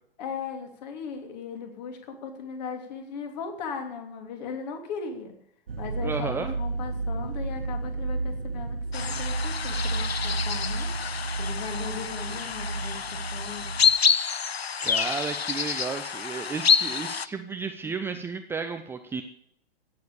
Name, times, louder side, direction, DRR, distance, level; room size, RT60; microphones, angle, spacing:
voice 1, 0.2-5.3 5.8-10.9 11.4-13.7 17.3-17.5, left 6 dB, 45° left, 5 dB, 3.2 m, -38 dB
sound 1, 5.7-13.9, right 3 dB, 70° right, 1.0 m, -32 dB
voice 2, 6.0-6.5 14.8-19.2, right 5 dB, 10° right, 6 dB, 0.6 m, -33 dB
sound 2, 8.9-17.3, left 6 dB, 85° left, 0.6 m, -27 dB
16.0 x 7.8 x 8.6 m, 0.72 s
figure-of-eight pair, 110°, 30 cm